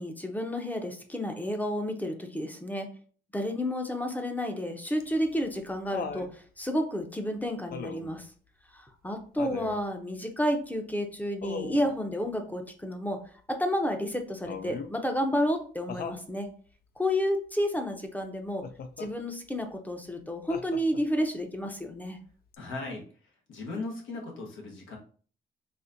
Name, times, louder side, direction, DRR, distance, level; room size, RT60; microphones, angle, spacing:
voice 1, 0.0-2.9 3.3-8.3 8.7-13.2 13.5-16.5 17.0-18.7 19.0-22.2, equal, 10° left, 5 dB, 0.6 m, -31 dB
Laughter, 5.0-6.3 7.7-8.2 9.4-9.8 11.4-11.9 14.5-15.0 15.9-16.3 18.6-19.1 20.5-21.1 22.5-22.6, left 5 dB, 50° left, 0.4 m, -38 dB
voice 2, 22.6-25.0, left 3 dB, 85° left, 0 dB, 1.1 m, -38 dB
4.1 x 2.7 x 2.5 m, 0.43 s
cardioid pair, 100°, 19 cm